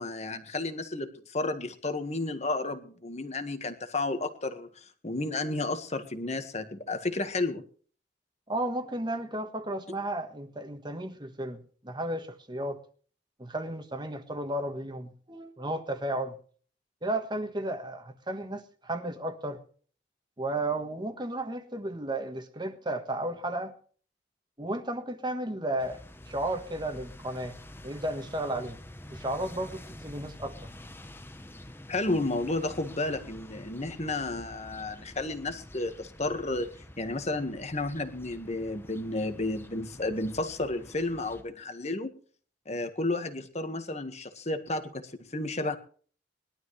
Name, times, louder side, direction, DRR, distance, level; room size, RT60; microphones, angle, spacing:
voice 1, 0.0-7.6 31.9-36.7 37.0-42.1 42.6-45.8, left 2 dB, 35° left, 1.7 m, -32 dB
voice 2, 8.5-12.8 13.4-16.4 17.0-19.6 20.4-23.7 24.6-27.6 27.8-28.8 29.1-30.7, right 1 dB, 25° right, 1.5 m, -33 dB
sound 1, 25.8-41.4, left 1 dB, 10° left, 1.0 m, -48 dB
21.0 x 12.5 x 3.3 m
head